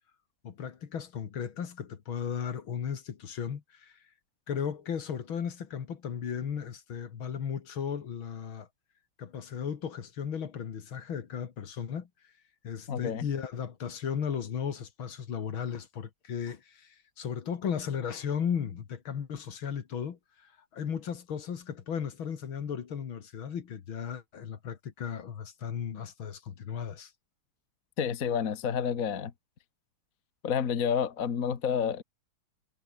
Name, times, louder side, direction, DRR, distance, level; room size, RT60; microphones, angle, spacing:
voice 1, 0.4-3.9 4.5-8.7 9.2-12.1 12.6-20.2 20.7-27.1, left 7 dB, 65° left, 2.6 m, -35 dB
voice 2, 12.9-13.3 28.0-29.3 30.4-32.0, left 7 dB, 45° left, 1.7 m, -29 dB
omnidirectional pair, 2.4 m